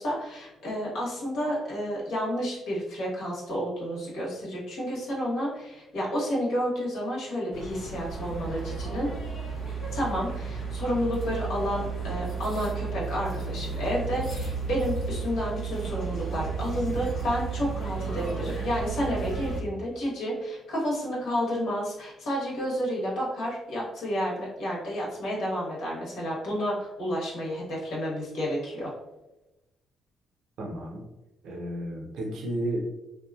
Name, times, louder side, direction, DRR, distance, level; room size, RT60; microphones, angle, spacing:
voice 1, 0.0-9.1 9.9-28.9, equal, 85° left, -6 dB, 1.1 m, -30 dB
sound 1, 7.5-19.6, right 5 dB, 60° left, 0.9 m, -33 dB
voice 2, 30.6-31.0 31.4-32.9, right 1 dB, 75° right, -1 dB, 0.6 m, -32 dB
2.8 x 2.2 x 2.3 m, 1.0 s
cardioid pair, 90°, 0 cm